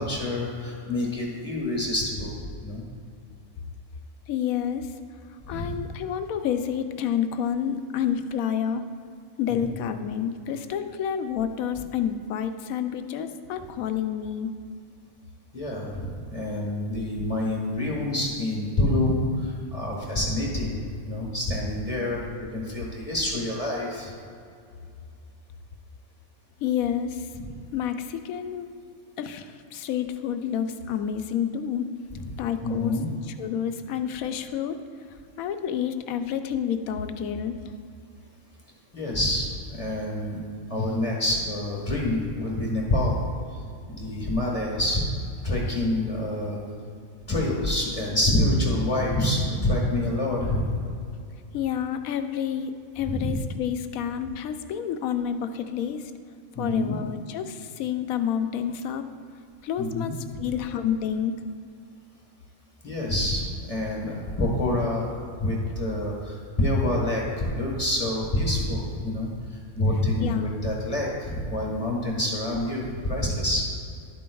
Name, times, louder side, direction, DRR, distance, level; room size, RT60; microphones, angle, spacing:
voice 1, 0.0-2.3 2.6-2.8 5.5-5.8 9.5-9.6 15.5-24.1 32.6-33.1 38.9-40.4 40.7-43.2 44.0-45.0 45.4-46.6 47.3-50.8 53.0-53.3 56.5-57.0 59.8-60.1 62.8-65.1 65.3-73.7, left 1 dB, 25° left, -3 dB, 1.3 m, -27 dB
voice 2, 4.3-4.9 5.5-8.9 9.4-14.5 26.6-27.3 27.7-28.7 29.2-31.9 32.4-34.8 35.4-37.6 51.5-56.1 56.6-59.1 59.6-61.3 70.2-70.6, left 8 dB, 80° left, 8 dB, 1.0 m, -29 dB
11.5 x 8.5 x 2.3 m, 2.4 s
omnidirectional pair, 1.5 m